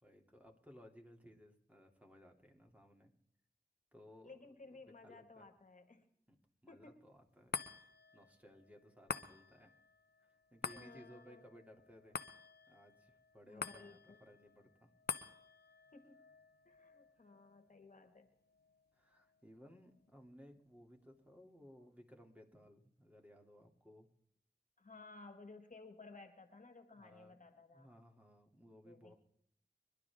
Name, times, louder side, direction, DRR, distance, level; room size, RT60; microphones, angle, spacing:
voice 1, 0.0-3.1 3.9-4.4 4.7-5.5 6.3-6.4 6.6-9.7 10.2-12.2 12.7-14.9 18.9-24.1 27.0-27.3 27.7-29.1, equal, 10° right, 2 dB, 2.8 m, -60 dB
voice 2, 4.2-6.1 6.7-7.0 10.7-11.4 13.5-14.2 15.9-16.2 16.7-18.3 24.8-27.9 28.9-29.1, left 3 dB, 55° left, 7 dB, 1.8 m, -57 dB
sound 1, 7.5-20.1 20.6-20.7, left 6 dB, 85° left, 0.8 m, -49 dB
25.5 x 11.5 x 3.6 m, 0.68 s
cardioid pair, 40°, 16 cm